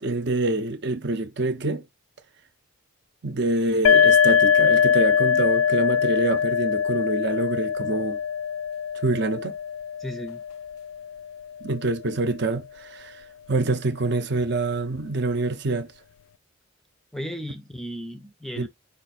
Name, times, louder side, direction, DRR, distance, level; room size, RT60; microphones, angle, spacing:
voice 1, 0.0-1.9 3.2-8.2 8.9-9.6 11.6-15.9 18.6-18.7, right 2 dB, 55° right, 0.7 m, -26 dB
sound 1, 3.8-11.3, left 7 dB, 80° left, 0.3 m, -22 dB
voice 2, 10.0-10.4 17.1-18.7, equal, ahead, 0.4 m, -35 dB
5.1 x 2.5 x 4.0 m
head